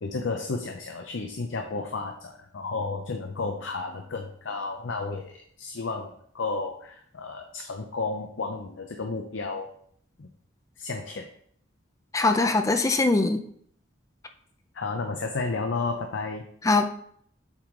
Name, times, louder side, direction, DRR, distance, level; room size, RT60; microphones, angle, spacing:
voice 1, 0.0-9.7 10.2-10.3 10.8-11.3 14.7-16.5, left 3 dB, 70° left, 4 dB, 0.6 m, -32 dB
voice 2, 12.1-13.4 16.6-16.8, left 3 dB, 15° left, 7 dB, 0.4 m, -22 dB
7.5 x 4.7 x 3.7 m, 0.64 s
head